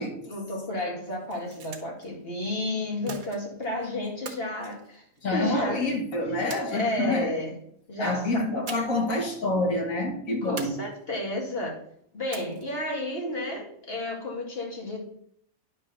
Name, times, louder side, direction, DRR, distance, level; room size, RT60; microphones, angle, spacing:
voice 1, 0.0-5.0 5.3-5.8 6.7-7.5 7.9-8.5 10.4-11.8 12.1-15.0, left 1 dB, 40° left, -1 dB, 2.5 m, -32 dB
sound 1, 1.2-2.1 3.1-3.7 4.2-5.5 6.5-7.3 8.7-9.1 9.4-9.5 10.6-11.3 12.3-12.9, right 4 dB, 75° right, 1.6 m, -42 dB
voice 2, 5.2-7.3 8.0-10.7, left 2 dB, 65° left, 1 dB, 2.2 m, -27 dB
10.5 x 3.7 x 6.7 m, 0.66 s
omnidirectional pair, 1.5 m